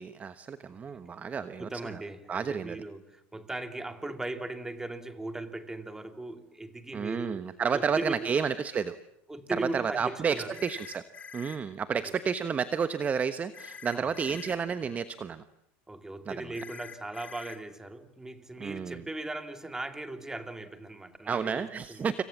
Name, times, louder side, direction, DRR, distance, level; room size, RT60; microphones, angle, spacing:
voice 1, 0.0-2.0 2.3-2.8 6.9-9.0 9.5-11.0 11.3-15.4 16.3-16.5 18.6-19.0 21.3-22.2, right 6 dB, 25° right, 1.1 m, -31 dB
voice 2, 0.9-8.3 9.3-10.6 12.0-12.1 13.9-14.2 15.9-22.1, right 2 dB, 10° right, 2.7 m, -39 dB
sound 1, 10.5-11.6 13.5-14.6 16.5-17.6, left 6 dB, 25° left, 2.8 m, -46 dB
29.5 x 26.5 x 7.4 m
supercardioid pair, 120°, 6 cm